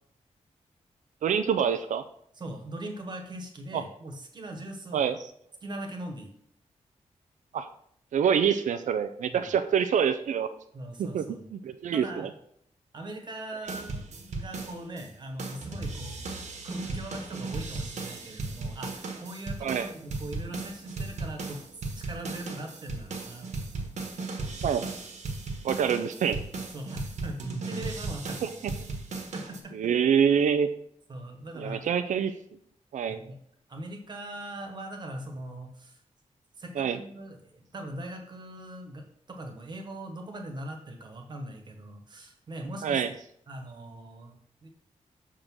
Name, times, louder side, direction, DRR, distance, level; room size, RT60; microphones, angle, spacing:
voice 1, 1.2-2.0 3.7-3.8 4.9-5.2 7.5-7.7 8.1-10.5 11.0-11.2 11.5-12.3 19.6-19.9 24.6-24.9 25.6-26.4 28.4-28.5 29.7-30.7 31.6-32.4 32.9-33.2 36.8-37.0 42.8-43.1, right 8 dB, 85° right, 10 dB, 0.4 m, -26 dB
voice 2, 2.3-5.1 5.6-6.3 9.3-9.5 10.7-11.5 11.9-12.3 12.9-21.6 21.9-23.9 26.7-28.4 29.2-29.7 31.1-31.8 33.1-33.4 33.7-36.0 36.6-43.0 43.5-44.7, right 1 dB, 35° right, 3 dB, 1.2 m, -41 dB
sound 1, 13.7-15.1 15.4-29.6, right 3 dB, 70° right, 1.3 m, -36 dB
6.6 x 3.7 x 6.1 m, 0.68 s
wide cardioid pair, 175°, 12 cm